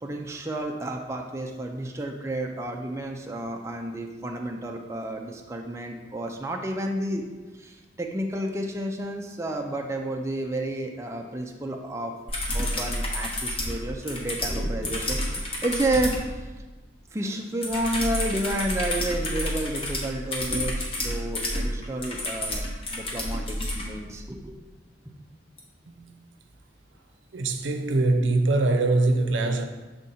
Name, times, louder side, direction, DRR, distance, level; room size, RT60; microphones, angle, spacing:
voice 1, 0.0-7.2 7.5-12.1 12.5-16.5 17.1-24.5 25.1-25.2, right 1 dB, 15° right, 0.4 m, -31 dB
sound 1, 12.3-16.2 17.6-23.8 25.6-25.7, left 1 dB, 30° left, 0.9 m, -30 dB
voice 2, 25.9-26.2 27.3-29.7, right 2 dB, 85° right, 0.6 m, -23 dB
6.7 x 3.6 x 4.2 m
head